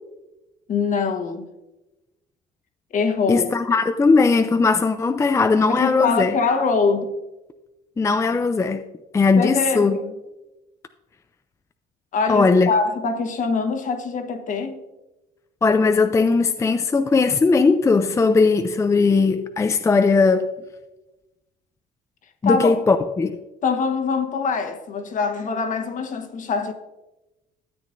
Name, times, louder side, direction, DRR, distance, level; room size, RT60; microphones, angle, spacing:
voice 1, 0.7-1.5 2.9-3.5 5.7-7.2 9.3-10.1 12.1-14.8 22.4-22.8 23.6-26.7, left 4 dB, 50° left, 1.2 m, -23 dB
voice 2, 3.3-6.3 8.0-8.8 9.1-10.0 12.3-12.7 15.6-20.5 22.4-23.4, left 4 dB, 15° left, 0.4 m, -18 dB
12.5 x 8.5 x 2.6 m
cardioid pair, 110°, 17 cm